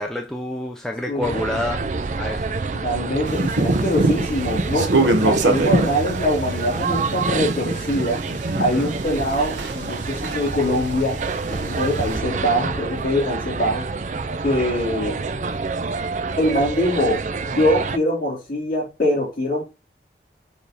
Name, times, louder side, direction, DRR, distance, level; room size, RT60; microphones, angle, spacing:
voice 1, 0.0-2.6 8.5-8.9, left 1 dB, 5° left, 0.6 m, -29 dB
voice 2, 1.1-1.4 2.8-8.2 8.6-11.2 11.5-13.9 14.4-15.2 16.4-17.2 17.5-19.6, equal, 50° left, 4.0 m, -23 dB
sound 1, 1.2-18.0, right 4 dB, 40° right, 0.4 m, -28 dB
sound 2, 3.3-10.0 10.2-12.2, right 2 dB, 85° right, 1.1 m, -24 dB
6.9 x 3.6 x 4.1 m
head